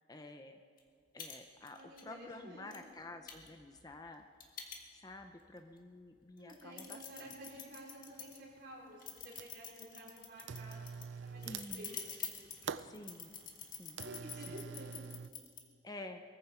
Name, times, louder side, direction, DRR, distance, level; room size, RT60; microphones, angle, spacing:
voice 1, 0.1-0.6 1.1-4.2 4.9-7.3 11.4-12.0 12.7-13.4 13.7-14.0 14.3-14.6 15.8-16.2, left 2 dB, 20° left, 6 dB, 0.6 m, -50 dB
sound 1, 0.8-0.9 1.2-1.4 1.6-2.0 2.7-2.8 3.3-5.3 5.8-5.9 6.4-8.4 9.0-15.6, left 8 dB, 45° left, 1.8 m, -47 dB
voice 2, 1.7-2.7 6.4-10.9 11.2-12.1 14.0-14.9, right 1 dB, 55° right, -4 dB, 4.7 m, -52 dB
sound 2, 7.5-7.6 8.2-8.7 9.0-9.7 10.4-15.3, right 6 dB, 80° right, 0.4 m, -46 dB
22.0 x 14.5 x 4.4 m, 2.2 s
head